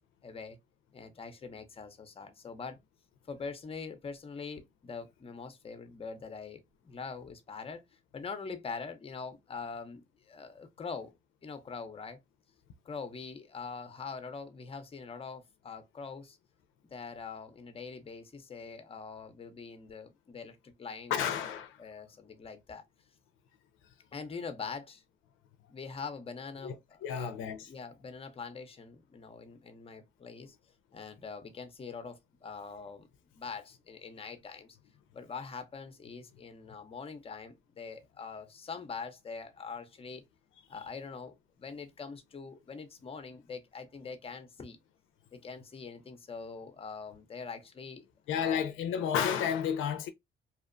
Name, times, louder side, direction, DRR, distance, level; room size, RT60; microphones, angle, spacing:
voice 1, 0.2-0.6 0.9-2.8 3.3-7.8 8.1-11.1 11.4-12.2 12.8-16.4 16.9-22.8 24.1-25.0 25.7-30.6 30.9-33.1 33.3-34.8 35.1-40.2 40.7-44.8 45.3-48.1 48.3-48.6, left 5 dB, 30° left, 0.6 m, -43 dB
voice 2, 21.1-21.8 26.6-27.6 48.3-50.1, left 8 dB, 85° left, 0.4 m, -31 dB
2.7 x 2.1 x 2.4 m
cardioid pair, 90°, 20 cm